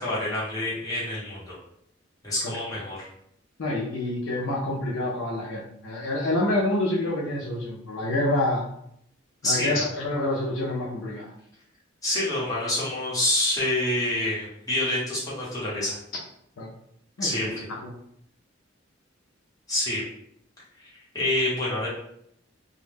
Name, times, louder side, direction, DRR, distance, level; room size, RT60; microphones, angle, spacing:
voice 1, 0.0-1.5 2.2-3.1 9.4-9.9 12.0-16.0 17.2-17.6 19.7-20.0 20.8-21.9, left 1 dB, 20° left, -8 dB, 1.0 m, -27 dB
voice 2, 3.6-8.7 9.4-11.3 16.6-16.7 17.2-17.5 17.8-17.9, left 1 dB, 70° left, -2 dB, 0.5 m, -27 dB
2.2 x 2.1 x 3.2 m, 0.72 s
head